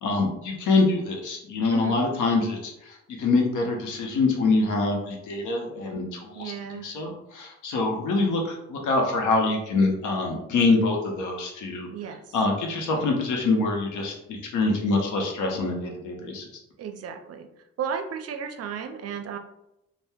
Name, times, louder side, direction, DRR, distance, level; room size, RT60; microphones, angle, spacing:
voice 1, 0.0-6.5 6.8-11.9 12.3-16.5, left 3 dB, 85° left, 1 dB, 0.8 m, -25 dB
voice 2, 6.4-6.9 11.9-12.4 16.8-17.5 17.8-19.4, right 7 dB, 55° right, 6 dB, 0.5 m, -34 dB
2.7 x 2.2 x 3.4 m, 0.84 s
cardioid pair, 90°, 30 cm